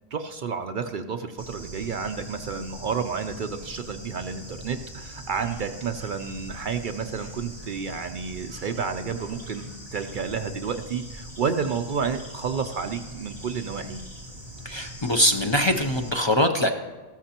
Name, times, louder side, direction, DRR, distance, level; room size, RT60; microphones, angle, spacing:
voice 1, 0.1-9.6 9.9-14.0, right 6 dB, 60° right, 8 dB, 0.6 m, -30 dB
Bird / Insect, 1.4-16.1, equal, 25° right, 2.0 m, -42 dB
voice 2, 14.6-16.7, left 1 dB, 30° left, 3 dB, 0.6 m, -22 dB
14.0 x 13.0 x 2.9 m, 1.3 s
omnidirectional pair, 1.1 m